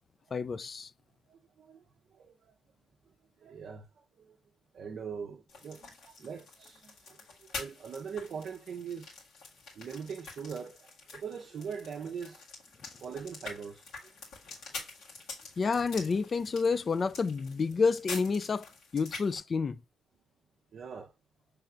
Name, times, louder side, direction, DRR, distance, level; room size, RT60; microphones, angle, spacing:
voice 1, 0.3-0.9 15.6-18.7 18.9-19.8, left 5 dB, 40° left, 0.3 m, -29 dB
voice 2, 1.3-1.8 2.1-2.3 3.4-4.4 4.7-7.2 7.6-9.1 9.8-12.5 13.0-13.9 20.7-21.1, right 6 dB, 60° right, 0.5 m, -42 dB
sound 1, 5.5-19.4, left 3 dB, 80° left, 1.8 m, -46 dB
5.9 x 3.3 x 2.4 m
cardioid pair, 90°, 0 cm